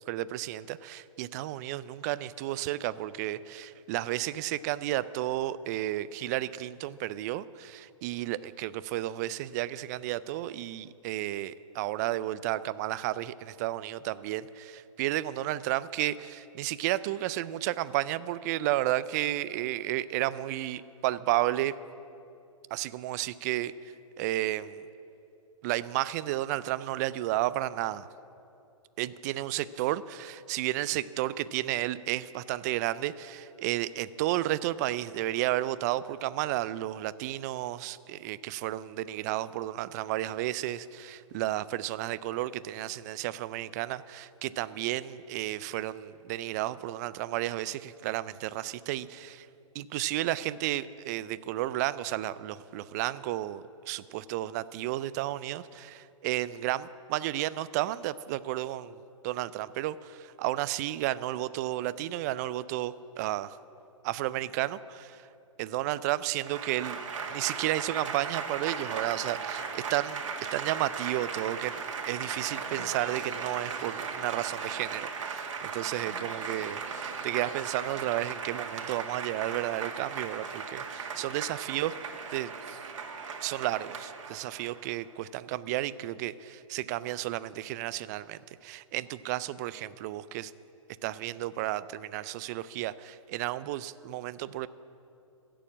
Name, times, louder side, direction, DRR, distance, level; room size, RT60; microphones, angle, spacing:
voice 1, 0.1-21.7 22.7-23.7 24.2-24.8 25.6-28.1 29.0-49.5 49.7-63.6 64.0-65.3 65.6-67.0 67.3-70.2 70.5-82.0 82.3-82.8 83.4-90.5 91.0-94.7, right 15 dB, 30° right, 17 dB, 0.4 m, -32 dB
Applause / Crowd, 66.4-84.9, right 5 dB, 65° right, 1.8 m, -37 dB
16.0 x 7.0 x 8.7 m, 2.7 s
hypercardioid pair, 130°, 17 cm